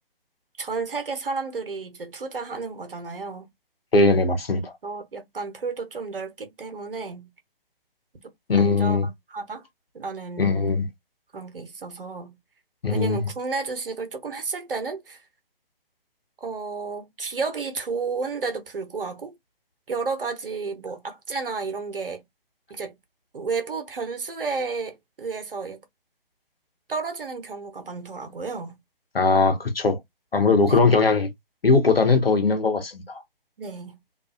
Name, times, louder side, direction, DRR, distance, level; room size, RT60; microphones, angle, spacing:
voice 1, 0.6-3.5 4.8-7.3 8.5-9.0 9.3-9.6 9.9-10.7 11.3-12.4 12.9-15.2 16.4-19.3 19.9-22.2 22.7-22.9 23.3-25.8 26.9-28.8 30.6-31.0 33.6-34.0, right 4 dB, 70° right, 1.0 m, -32 dB
voice 2, 3.9-4.7 8.5-9.1 10.4-10.9 12.8-13.3 29.1-30.0 30.3-31.3 31.6-33.2, left 3 dB, 80° left, 1.0 m, -20 dB
2.6 x 2.4 x 2.4 m
figure-of-eight pair, 130°, 29 cm